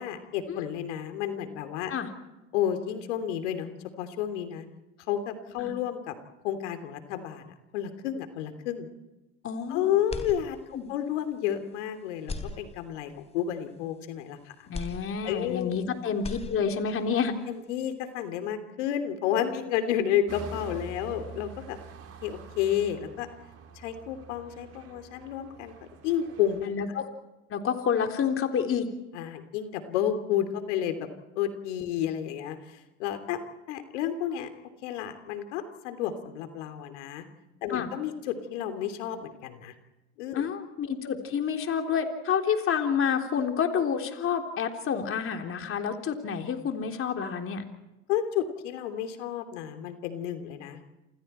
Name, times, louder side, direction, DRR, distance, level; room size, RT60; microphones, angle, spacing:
voice 1, 0.0-1.9 2.5-3.7 4.0-4.6 5.1-6.2 6.4-8.9 9.7-14.7 15.2-15.8 17.5-21.8 22.2-23.3 23.7-25.7 26.0-26.7 29.1-31.1 31.3-33.4 33.7-34.5 34.8-37.3 37.6-39.7 40.2-40.5 48.1-50.8, left 10 dB, 75° left, 8 dB, 3.2 m, -31 dB
voice 2, 9.4-9.9 10.7-10.9 14.7-17.4 26.6-27.1 27.5-28.9 37.7-37.9 40.3-47.6, left 7 dB, 35° left, 4 dB, 3.6 m, -29 dB
sound 1, 10.1-11.0 11.4-11.5 12.2-13.2 14.7-15.8 16.1-17.0, left 3 dB, 15° left, 3.6 m, -39 dB
sound 2, 20.3-26.6, right 3 dB, 40° right, 5.5 m, -45 dB
28.0 x 27.5 x 4.5 m, 1.0 s
supercardioid pair, 100°, 35 cm